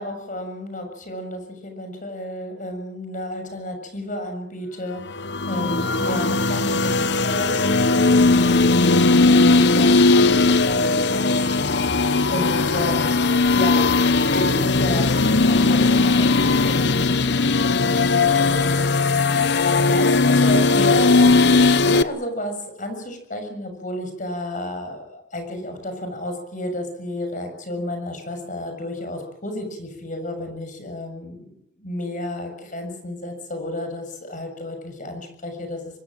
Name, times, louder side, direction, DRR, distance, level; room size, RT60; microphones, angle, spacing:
voice 1, 0.0-11.5 12.3-13.9 14.3-36.0, left 1 dB, 45° left, 6 dB, 7.0 m, -32 dB
sound 1, 5.1-22.0, left 3 dB, 65° left, 0.9 m, -18 dB
25.0 x 21.5 x 7.7 m, 0.77 s
head